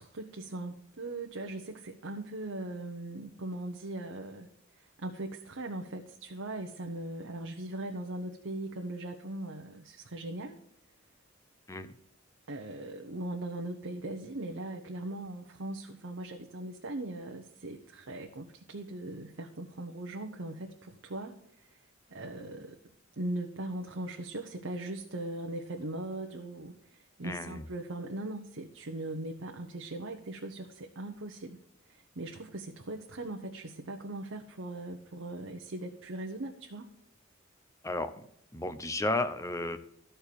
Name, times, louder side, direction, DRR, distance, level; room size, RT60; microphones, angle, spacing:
voice 1, 0.2-4.5 4.7-10.6 12.5-21.7 22.1-22.8 23.2-31.6 31.9-36.9, right 2 dB, 70° right, 2 dB, 0.9 m, -39 dB
voice 2, 27.2-27.6 37.8-38.1 38.5-39.8, left 2 dB, 15° left, 10 dB, 0.7 m, -33 dB
13.5 x 4.5 x 6.8 m, 0.71 s
head